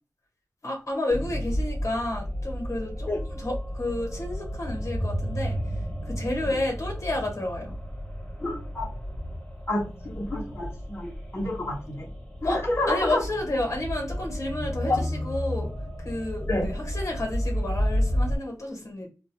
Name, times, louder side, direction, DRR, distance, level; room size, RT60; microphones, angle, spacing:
voice 1, 0.6-3.1 3.3-5.6 6.0-7.8 12.4-12.6 12.9-15.7 16.0-19.1, left 1 dB, 60° left, 1.2 m, -31 dB
sound 1, 1.1-18.4, equal, 15° left, 1.4 m, -32 dB
voice 2, 8.4-8.9 9.7-12.1 12.4-13.2 14.9-15.1 16.5-16.7, left 2 dB, 40° left, 1.0 m, -29 dB
2.5 x 2.1 x 3.0 m
wide cardioid pair, 65°, 6 cm